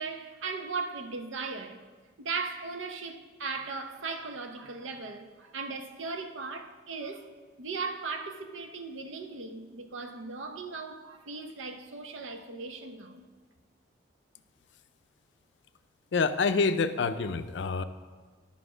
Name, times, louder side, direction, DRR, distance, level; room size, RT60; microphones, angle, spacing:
voice 1, 0.0-1.8 2.2-7.3 7.6-13.3, right 4 dB, 90° right, 0.7 m, -37 dB
voice 2, 16.1-17.8, left 4 dB, 70° left, 0.4 m, -27 dB
10.0 x 5.7 x 4.9 m
head